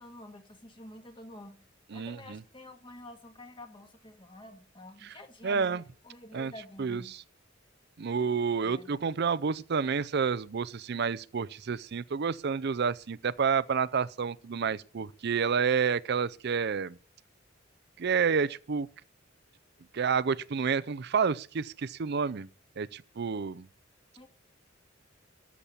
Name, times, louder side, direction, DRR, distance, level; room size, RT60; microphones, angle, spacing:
voice 1, 0.0-1.6 1.9-5.7 6.0-7.1 8.6-8.9 24.2-24.3, left 1 dB, 25° left, 1.9 m, -49 dB
voice 2, 1.9-2.4 5.0-5.1 5.4-5.8 6.3-6.5 6.8-7.0 8.0-17.0 18.0-18.9 19.9-22.5 22.8-23.7, right 6 dB, 55° right, 0.5 m, -29 dB
13.5 x 7.2 x 8.5 m
head